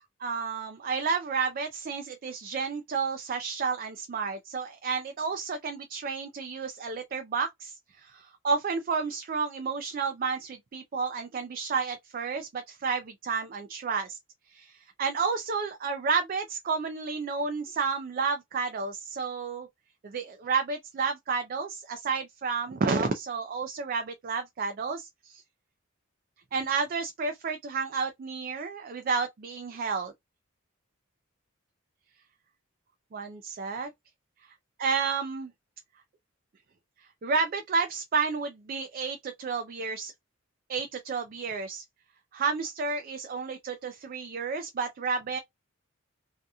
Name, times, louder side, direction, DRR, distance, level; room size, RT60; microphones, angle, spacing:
voice 1, 0.2-14.2 14.5-19.7 20.0-25.4 26.5-30.1 33.1-33.9 34.8-35.5 37.2-40.1 40.7-41.8 42.3-45.4, right 5 dB, 40° right, 0.3 m, -31 dB
2.7 x 2.4 x 2.2 m
head